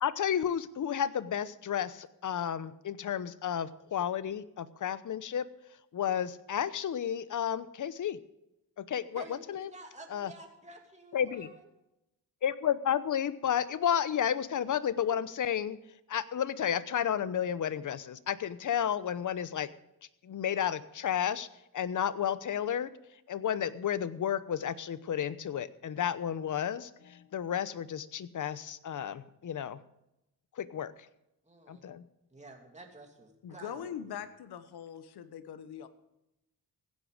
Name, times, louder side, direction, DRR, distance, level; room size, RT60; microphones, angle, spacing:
voice 1, 0.0-5.5 5.9-8.2 8.8-9.7 10.1-10.3 11.1-11.5 12.4-15.8 16.1-19.7 20.2-21.5 21.7-22.9 23.3-29.8 30.6-30.9 31.7-32.0, left 9 dB, 50° left, 16 dB, 0.9 m, -32 dB
voice 2, 9.1-11.7 31.4-31.8 32.3-34.2, right 2 dB, 20° right, 2 dB, 2.8 m, -51 dB
voice 3, 33.4-35.9, left 9 dB, 80° left, 12 dB, 1.3 m, -42 dB
16.0 x 10.5 x 5.0 m, 0.88 s
cardioid pair, 75°, 38 cm